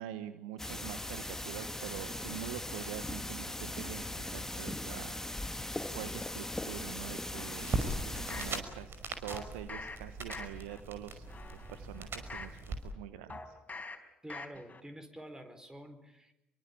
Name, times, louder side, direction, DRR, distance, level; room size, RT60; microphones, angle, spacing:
voice 1, 0.0-5.2 5.9-11.2 11.5-13.6, right 12 dB, 75° right, 12 dB, 1.0 m, -45 dB
sound 1, 0.6-8.6, left 1 dB, 10° left, 1.8 m, -39 dB
sound 2, 7.3-8.6 9.3-10.0 10.3-10.8 11.2-12.6 13.3-14.0 14.3-14.8 15.2-15.3, left 3 dB, 25° left, 4.4 m, -45 dB
sound 3, 7.6-12.8, right 3 dB, 45° right, 5.5 m, -39 dB
voice 2, 14.2-16.3, right 1 dB, 10° right, 8 dB, 4.6 m, -48 dB
26.5 x 23.5 x 8.7 m, 0.90 s
figure-of-eight pair, 50°, 6 cm